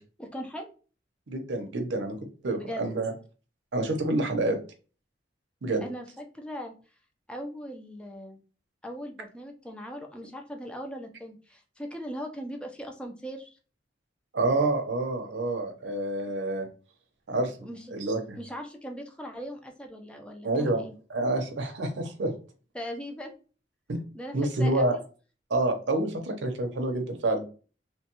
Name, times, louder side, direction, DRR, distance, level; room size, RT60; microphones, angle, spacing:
voice 1, 0.2-0.7 2.5-2.9 5.8-6.7 7.3-8.4 8.8-13.6 17.6-18.0 18.4-20.9 22.7-23.3 24.1-25.0, equal, 5° left, 3 dB, 0.5 m, -39 dB
voice 2, 1.3-2.1 2.4-3.1 3.7-4.6 5.6-5.8 14.3-16.7 17.3-17.6 17.9-18.4 20.4-20.8 21.1-22.3 23.9-24.0 24.3-25.0 25.5-27.4, right 2 dB, 80° right, 5 dB, 0.6 m, -27 dB
3.0 x 2.2 x 2.9 m, 0.37 s
head